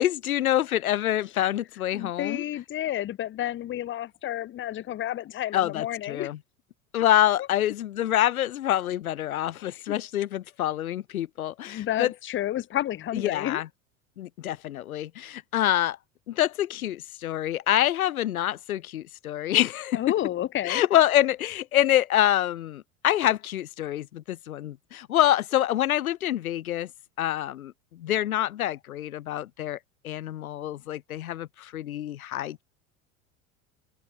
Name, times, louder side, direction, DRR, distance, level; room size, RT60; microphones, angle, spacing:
voice 1, 0.0-2.4 5.5-6.4 6.9-12.1 13.1-13.7 14.2-16.0 16.3-20.0 20.6-26.9 27.2-29.8 30.0-32.6, left 12 dB, 85° left, 0.6 m, -26 dB
voice 2, 1.9-6.3 9.6-10.0 11.6-13.6 19.9-20.8, left 13 dB, 30° left, 0.8 m, -31 dB
figure-of-eight pair, 75°, 42 cm